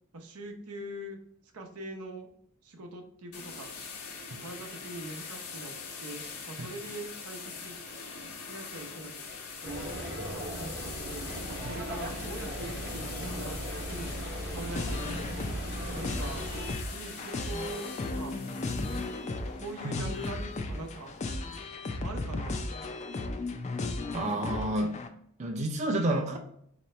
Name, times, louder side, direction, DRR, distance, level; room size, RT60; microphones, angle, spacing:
voice 1, 0.1-1.2 1.5-2.3 2.6-3.7 4.4-5.7 6.0-7.9 8.4-9.1 9.6-10.0 10.6-14.1 14.5-15.5 15.9-16.5 16.9-18.3 19.6-21.1 22.0-22.6, right 1 dB, 75° right, 2 dB, 0.8 m, -42 dB
sound 1, 3.3-21.7, left 5 dB, 90° left, 1.2 m, -43 dB
sound 2, 9.6-16.7, equal, 50° right, 0.9 m, -37 dB
sound 3, 14.8-25.1, left 2 dB, 30° left, 0.4 m, -36 dB
voice 2, 24.1-25.0 25.4-26.4, right 1 dB, 30° right, 1 dB, 0.5 m, -29 dB
4.3 x 2.9 x 3.1 m, 0.68 s
head